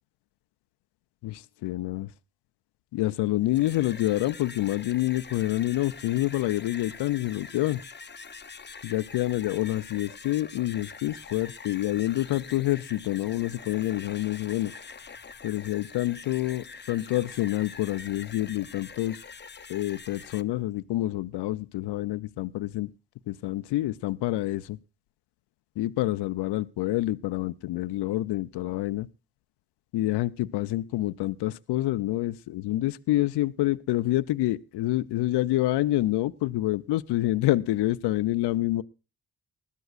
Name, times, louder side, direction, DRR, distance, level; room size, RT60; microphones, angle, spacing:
voice 1, 1.2-2.1 2.9-7.8 8.8-14.7 15.4-19.2 19.7-22.9 23.3-24.8 25.8-29.1 29.9-38.8, left 16 dB, 85° left, 12 dB, 0.5 m, -27 dB
sound 1, 3.4-20.4, left 5 dB, 25° left, 0.7 m, -45 dB
20.0 x 12.0 x 2.4 m, 0.31 s
supercardioid pair, 50°, 40 cm